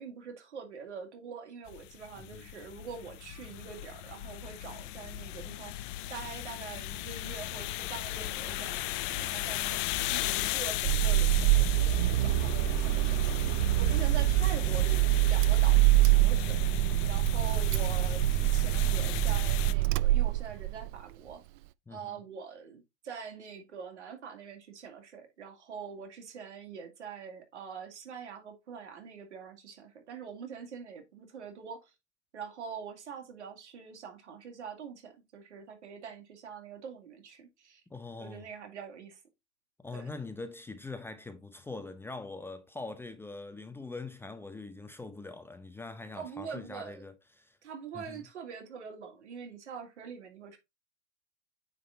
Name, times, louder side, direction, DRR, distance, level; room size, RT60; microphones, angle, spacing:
voice 1, 0.0-21.4 21.9-31.9 32.3-37.8 38.2-39.2 39.9-40.1 46.1-47.1 47.6-50.6, right 6 dB, 80° right, 2.5 m, -44 dB
sound 1, 1.7-19.7, left 15 dB, 50° left, 0.7 m, -36 dB
voice 2, 2.2-2.5 21.9-22.1 37.9-38.5 39.8-47.6 47.9-48.2, left 3 dB, 5° left, 0.6 m, -43 dB
Car / Engine starting, 10.8-20.9, right 19 dB, 45° right, 0.4 m, -25 dB
9.2 x 4.0 x 4.0 m
hypercardioid pair, 115°, 34 cm